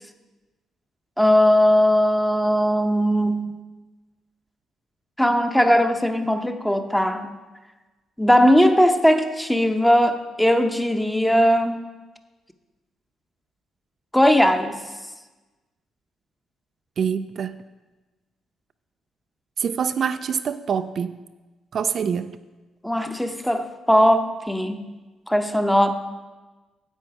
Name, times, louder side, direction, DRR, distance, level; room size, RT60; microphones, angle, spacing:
voice 1, 1.2-3.5 5.2-7.3 8.2-11.8 14.1-14.8 22.8-24.9 25.3-25.9, equal, 5° left, 0.8 m, -19 dB
voice 2, 17.0-17.6 19.6-21.2 21.7-22.3, right 7 dB, 55° right, 0.3 m, -25 dB
9.7 x 7.6 x 4.7 m
cardioid pair, 90°, 0 cm